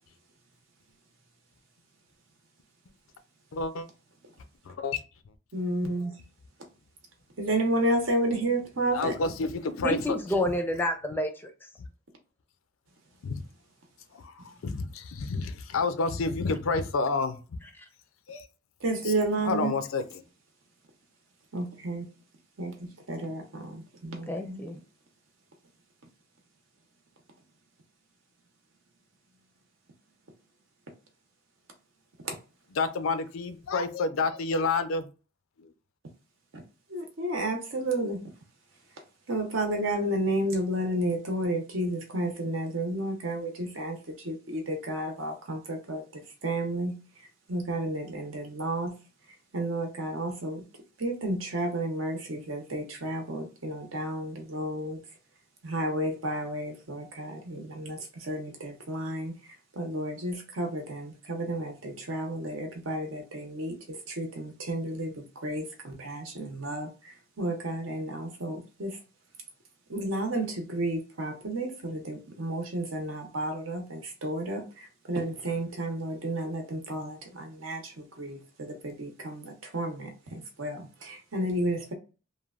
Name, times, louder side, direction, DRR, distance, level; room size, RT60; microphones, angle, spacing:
voice 1, 3.5-3.9 4.7-5.0 8.9-10.2 13.2-13.4 14.1-17.4 18.3-18.5 19.4-20.0 32.8-35.1 35.6-35.7, left 3 dB, 85° left, 0.4 m, -29 dB
voice 2, 5.5-6.2 7.4-9.2 18.8-19.7 21.5-22.1 22.6-24.6 32.2-32.3 36.9-38.2 39.3-46.9 47.5-48.9 49.5-50.6 51.0-55.0 55.6-69.0 69.9-81.9, right 1 dB, 75° right, 0.9 m, -32 dB
voice 3, 9.8-11.5 24.3-24.8, left 1 dB, 10° left, 0.5 m, -29 dB
3.2 x 2.2 x 2.4 m
head